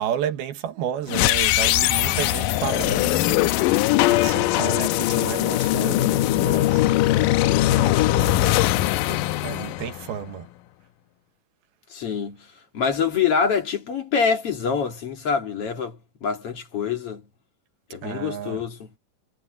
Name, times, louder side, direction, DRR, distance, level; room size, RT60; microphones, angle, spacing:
voice 1, 0.0-10.5 18.0-18.6, right 10 dB, 90° right, 3.4 m, -32 dB
sound 1, 1.1-10.3, left 16 dB, 80° left, 2.1 m, -21 dB
voice 2, 11.9-12.4 12.7-16.0 16.2-17.2 17.9-18.9, left 6 dB, 45° left, 2.6 m, -25 dB
omnidirectional pair, 4.3 m